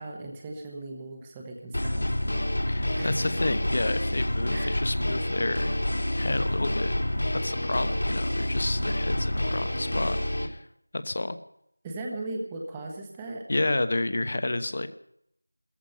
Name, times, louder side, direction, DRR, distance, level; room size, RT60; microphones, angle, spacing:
voice 1, 0.0-2.0 2.9-3.2 4.5-4.8 11.8-13.4, right 2 dB, 5° right, 1 dB, 1.1 m, -38 dB
sound 1, 1.7-10.5, left 1 dB, 65° left, 2.9 m, -28 dB
voice 2, 2.7-5.8 6.2-7.0 7.3-10.7 10.9-11.4 13.5-14.9, left 2 dB, 30° left, 12 dB, 1.0 m, -30 dB
17.5 x 14.5 x 5.7 m, 0.73 s
figure-of-eight pair, 180°, 0 cm